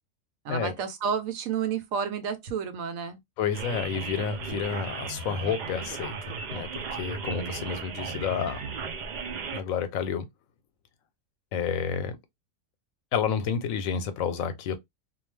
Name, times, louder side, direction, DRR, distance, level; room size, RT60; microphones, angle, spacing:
voice 1, 0.4-3.2, right 7 dB, 85° right, 1.1 m, -30 dB
voice 2, 3.4-8.6 9.5-10.2 11.5-12.2 13.1-14.8, left 7 dB, 90° left, 1.0 m, -30 dB
sound 1, 3.5-9.6, right 5 dB, 65° right, 0.4 m, -36 dB
2.4 x 2.2 x 3.1 m
omnidirectional pair, 1.4 m